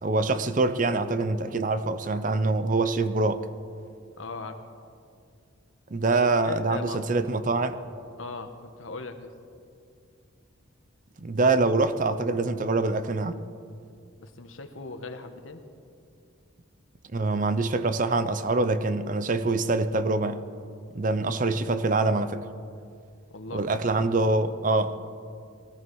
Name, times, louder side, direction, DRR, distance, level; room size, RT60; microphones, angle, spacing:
voice 1, 0.0-3.4 5.9-7.8 11.2-13.4 17.1-20.4 20.9-22.4 23.5-25.1, right 3 dB, 40° right, 12 dB, 0.6 m, -25 dB
voice 2, 4.2-4.6 6.1-7.0 8.2-9.3 14.2-15.6 23.3-23.7, left 3 dB, 75° left, 7 dB, 1.2 m, -38 dB
19.5 x 14.0 x 4.7 m, 2.3 s
head